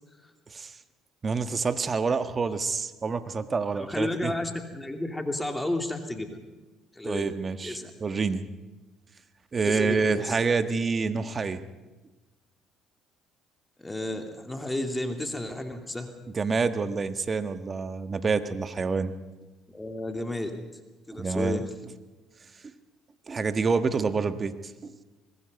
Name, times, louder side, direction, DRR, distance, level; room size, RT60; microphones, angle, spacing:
voice 1, 1.2-4.3 7.0-8.5 9.5-11.6 16.3-19.1 21.1-21.6 22.6-22.7 23.3-24.5 24.8-24.9, right 4 dB, 35° right, 10 dB, 1.5 m, -27 dB
voice 2, 3.8-6.4 6.9-7.3 7.6-7.9 9.6-10.4 13.8-16.1 19.7-20.5 21.1-21.6, left 1 dB, 10° left, 5 dB, 2.6 m, -32 dB
24.5 x 20.0 x 5.3 m, 1.2 s
supercardioid pair, 75°, 0 cm